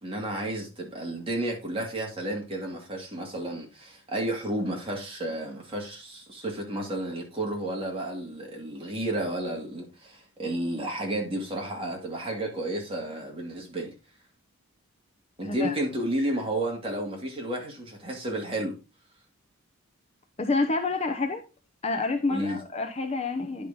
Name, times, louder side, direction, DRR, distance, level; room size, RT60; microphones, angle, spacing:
voice 1, 0.0-13.9 15.4-18.8 22.3-22.6, right 1 dB, 25° right, 2.4 m, -32 dB
voice 2, 15.4-15.8 20.4-21.4 21.8-23.7, left 3 dB, 30° left, 0.8 m, -28 dB
10.5 x 5.2 x 3.9 m
head